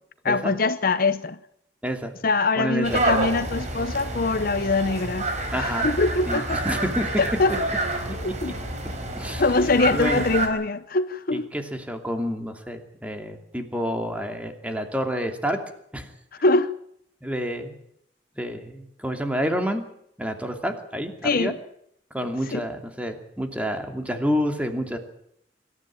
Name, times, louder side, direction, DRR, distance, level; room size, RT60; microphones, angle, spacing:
voice 1, 0.2-1.4 2.2-6.6 7.2-7.6 8.2-8.5 9.4-11.5 16.4-16.7 21.2-21.6 22.5-22.6, left 3 dB, 55° left, 0.9 m, -23 dB
voice 2, 1.8-2.1 2.6-3.0 5.5-5.9 6.3-7.1 9.2-9.4 9.9-10.2 11.3-15.6 15.9-16.1 17.2-17.8 18.4-19.8 20.2-21.5 22.1-25.0, equal, 10° right, 2.7 m, -29 dB
sound 1, 2.8-10.5, right 2 dB, 40° right, 4.6 m, -28 dB
25.5 x 13.5 x 8.8 m
head